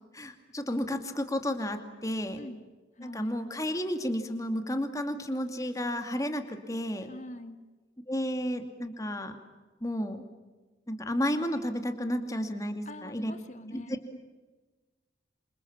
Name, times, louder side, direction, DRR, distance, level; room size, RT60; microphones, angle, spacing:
voice 1, 0.1-2.4 3.0-7.1 8.1-9.4 9.8-10.2 10.9-13.3 13.7-13.8, equal, 20° left, 7 dB, 2.5 m, -32 dB
voice 2, 3.0-3.5 7.1-7.6 12.9-14.2, left 1 dB, 40° left, 8 dB, 2.0 m, -44 dB
28.0 x 27.0 x 7.4 m, 1.3 s
head